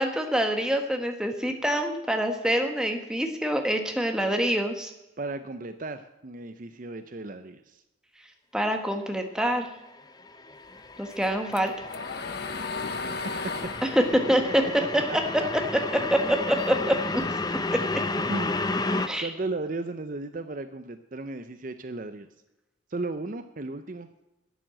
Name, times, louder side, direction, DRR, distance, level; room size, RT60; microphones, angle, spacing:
voice 1, 0.0-4.9 8.5-9.7 11.0-11.7 13.8-17.2 17.7-17.8 19.1-19.3, equal, 5° right, 4 dB, 1.3 m, -25 dB
voice 2, 5.2-7.8 13.0-13.4 14.4-14.7 15.1-15.5 17.6-22.3 22.9-24.1, right 2 dB, 40° right, 10 dB, 0.6 m, -36 dB
sound 1, 9.9-19.1, left 3 dB, 20° left, 0.6 m, -32 dB
sound 2, 11.1-15.6 16.0-17.6, left 4 dB, 50° left, 0.8 m, -36 dB
12.0 x 8.9 x 7.6 m, 0.97 s
head